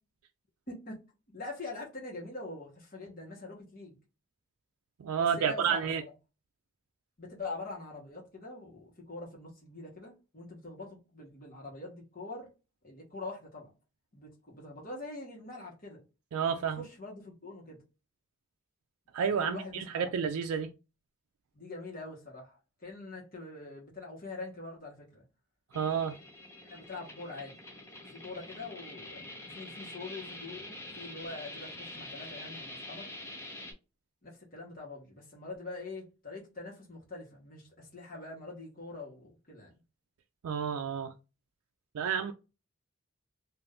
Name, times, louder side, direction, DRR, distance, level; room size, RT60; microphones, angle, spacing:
voice 1, 0.7-1.0 1.3-4.0 5.2-5.8 7.2-12.5 12.8-13.7 14.1-16.0 16.5-17.8 19.3-20.3 21.5-25.2 26.6-27.6 28.1-33.1 34.2-39.7, left 3 dB, 40° left, 1.2 m, -44 dB
voice 2, 5.0-6.0 16.3-16.8 19.1-20.7 25.7-26.2 40.4-41.1 41.9-42.3, right 7 dB, 90° right, 0.3 m, -30 dB
sound 1, 25.7-33.7, left 1 dB, 10° left, 0.5 m, -46 dB
2.6 x 2.5 x 3.4 m
head